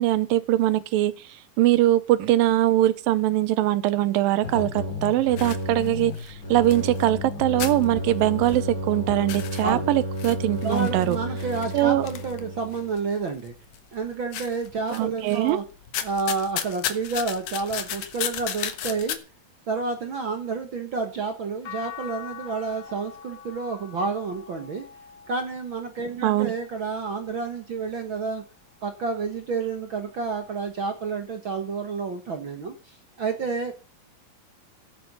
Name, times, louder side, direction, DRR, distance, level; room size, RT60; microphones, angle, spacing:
voice 1, 0.0-11.2 11.7-12.1 14.9-15.6 26.2-26.5, right 15 dB, 80° right, 2.5 m, -22 dB
sound 1, 4.4-13.0, equal, 25° left, 3.4 m, -32 dB
sound 2, 5.4-7.3 7.6-8.9 9.2-13.0 13.5-14.0 14.3-15.5 15.8-19.2, left 10 dB, 65° left, 2.7 m, -34 dB
voice 2, 10.6-13.5 13.9-15.6 16.0-19.2 19.7-24.8 25.3-28.4 28.8-33.7, right 4 dB, 55° right, 1.3 m, -30 dB
sound 3, 21.6-27.9 28.5-29.9 31.3-31.4, left 8 dB, 40° left, 2.6 m, -45 dB
14.0 x 11.0 x 5.5 m
omnidirectional pair, 4.1 m